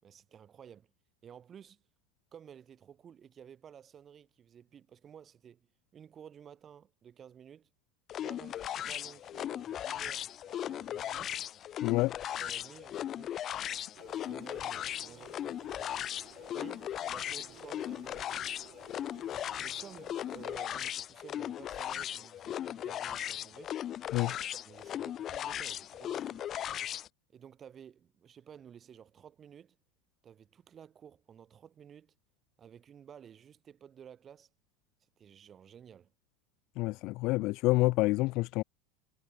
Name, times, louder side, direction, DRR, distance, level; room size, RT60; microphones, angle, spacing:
voice 1, 0.0-0.9 1.2-1.8 2.3-5.7 5.9-7.7 8.2-11.4 12.4-13.4 14.2-16.0 16.5-18.5 19.6-23.8 24.2-24.3 24.6-26.4 27.3-29.8 30.2-32.1 32.6-34.5 35.2-36.1, right 8 dB, 20° right, 6.2 m, -53 dB
sound 1, 8.1-27.1, left 11 dB, 30° left, 1.3 m, -38 dB
voice 2, 11.8-12.1 24.1-24.3 36.8-38.6, left 21 dB, 45° left, 0.5 m, -28 dB
sound 2, 13.9-20.6, right 17 dB, 40° right, 7.7 m, -56 dB
supercardioid pair, 165°, 0 cm